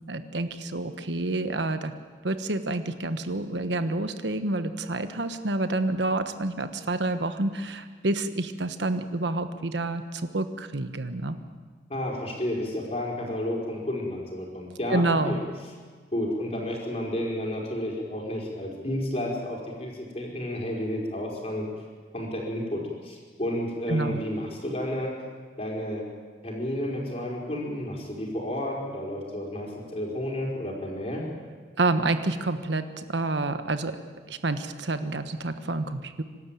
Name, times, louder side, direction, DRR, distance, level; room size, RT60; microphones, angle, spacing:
voice 1, 0.1-1.9 2.2-11.4 14.9-15.4 23.9-24.2 31.8-34.0 34.3-36.2, right 2 dB, 90° right, 9 dB, 1.2 m, -28 dB
voice 2, 11.9-15.4 16.1-21.7 22.1-25.1 25.6-26.0 26.4-31.2, left 1 dB, 35° left, -1 dB, 5.0 m, -31 dB
25.0 x 13.0 x 9.1 m, 1.6 s
head